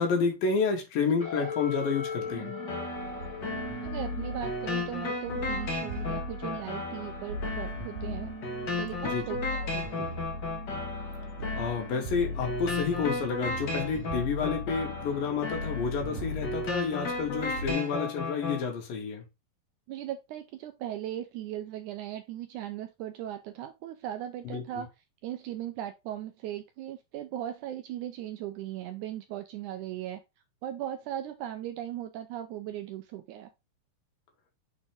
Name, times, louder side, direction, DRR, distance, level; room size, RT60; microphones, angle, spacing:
voice 1, 0.0-2.5 9.0-9.2 11.5-19.2 24.5-24.8, left 5 dB, 80° left, 3.5 m, -30 dB
sound 1, 1.2-16.0, left 3 dB, 10° left, 1.8 m, -42 dB
sound 2, 2.7-18.7, left 2 dB, 50° left, 1.3 m, -35 dB
sound 3, 3.0-17.7, left 1 dB, 50° right, 2.4 m, -39 dB
voice 2, 3.8-8.3 8.8-10.2 19.9-24.9 25.2-30.2 30.6-33.5, right 12 dB, 80° right, 1.8 m, -38 dB
6.9 x 4.4 x 3.5 m
omnidirectional pair, 4.0 m